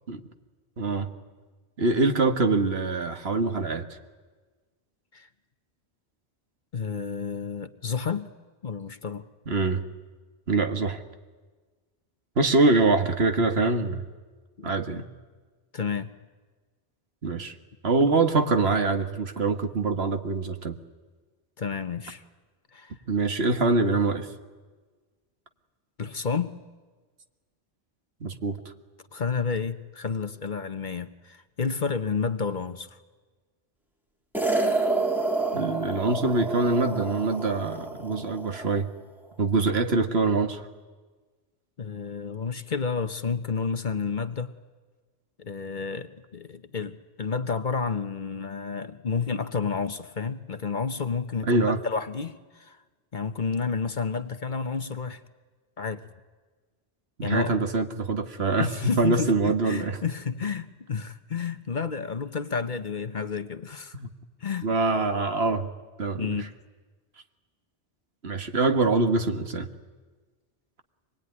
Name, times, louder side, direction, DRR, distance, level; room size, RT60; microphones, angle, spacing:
voice 1, 0.8-1.1 1.8-3.9 9.5-9.8 10.5-11.0 12.4-14.0 14.6-15.1 17.2-17.5 17.8-20.7 23.1-24.3 28.2-28.6 35.5-38.9 39.4-40.6 51.4-51.8 57.2-60.0 63.9-64.1 64.6-65.7 66.0-66.5 68.2-69.7, right 3 dB, 65° right, 6 dB, 1.7 m, -24 dB
voice 2, 6.7-8.3 8.6-9.2 14.6-14.7 15.7-16.1 21.6-22.2 22.7-22.9 26.0-26.6 29.1-32.9 41.8-44.5 45.4-52.8 53.1-55.2 55.8-56.0 57.2-57.5 58.6-63.9 64.4-64.7 66.2-66.5, left 5 dB, 45° left, 10 dB, 1.0 m, -30 dB
sound 1, 34.3-38.8, right 3 dB, ahead, 1.8 m, -29 dB
25.0 x 20.5 x 9.7 m, 1.4 s
omnidirectional pair, 1.2 m